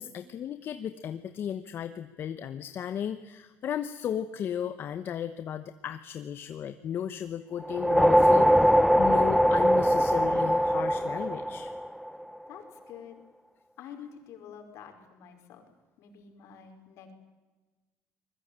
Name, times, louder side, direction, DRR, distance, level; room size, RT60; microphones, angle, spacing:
voice 1, 0.0-11.7, left 9 dB, 45° left, 10 dB, 1.1 m, -35 dB
sound 1, 7.6-12.2, equal, ahead, 0.8 m, -22 dB
voice 2, 12.5-13.2 13.8-15.7 16.0-17.1, left 8 dB, 65° left, 4 dB, 5.1 m, -47 dB
23.5 x 21.5 x 9.0 m, 1.2 s
cardioid pair, 130°, 5 cm